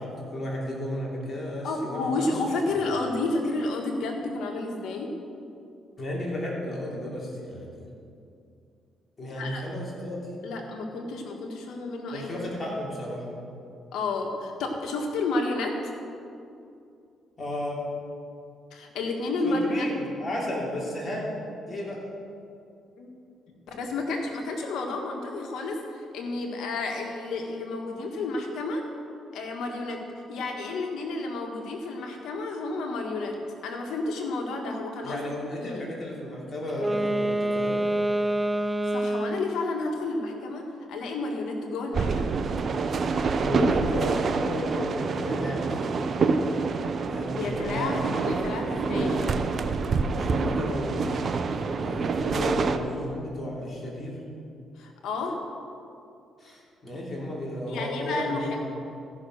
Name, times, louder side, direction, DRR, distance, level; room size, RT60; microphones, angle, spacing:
voice 1, 0.0-2.3 6.0-7.9 9.2-10.3 12.1-13.2 17.4-17.8 19.4-21.3 21.7-22.0 35.0-37.8 43.3-46.1 47.1-48.0 48.6-49.2 50.1-51.1 51.8-54.2 56.4-58.4, left 1 dB, 35° left, -4 dB, 3.2 m, -33 dB
voice 2, 1.6-5.1 9.3-9.6 10.4-12.8 13.9-15.9 18.7-19.9 23.0-23.1 23.7-28.8 29.3-30.0 30.3-33.3 33.6-35.2 35.6-35.9 38.8-42.3 47.3-49.4 54.8-55.4 57.7-58.6, left 3 dB, 80° left, 2 dB, 1.7 m, -31 dB
Wind instrument woodwind instrument, 36.7-39.6, right 1 dB, 10° right, 0.5 m, -26 dB
sound 1, 41.9-52.8, right 4 dB, 50° right, 0.7 m, -27 dB
14.0 x 6.2 x 6.3 m, 2.6 s
cardioid pair, 90°, 0 cm